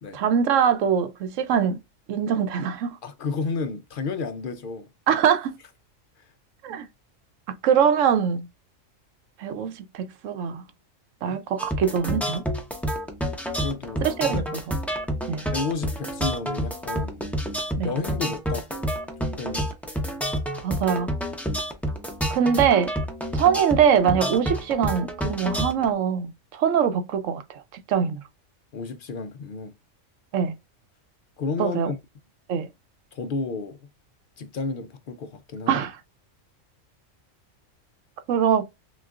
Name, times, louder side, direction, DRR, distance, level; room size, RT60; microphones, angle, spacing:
voice 1, 0.1-1.8 2.1-3.0 5.1-5.6 6.6-6.9 7.6-8.5 9.4-10.6 11.2-12.4 14.0-14.4 15.3-15.5 17.8-17.9 20.6-21.1 22.3-22.9 23.3-27.6 27.9-28.2 30.3-30.5 31.6-31.9 32.5-32.7 35.7-36.0 38.3-38.6, right 8 dB, 80° right, 1.0 m, -23 dB
voice 2, 3.0-4.9 6.2-6.3 11.3-11.4 13.6-14.4 15.5-17.2 17.5-18.9 19.4-19.7 28.7-29.7 31.4-32.0 33.1-33.9 34.4-35.9, left 4 dB, 60° left, 0.6 m, -32 dB
sound 1, 11.6-25.9, equal, ahead, 0.6 m, -29 dB
6.0 x 2.4 x 2.4 m
omnidirectional pair, 1.3 m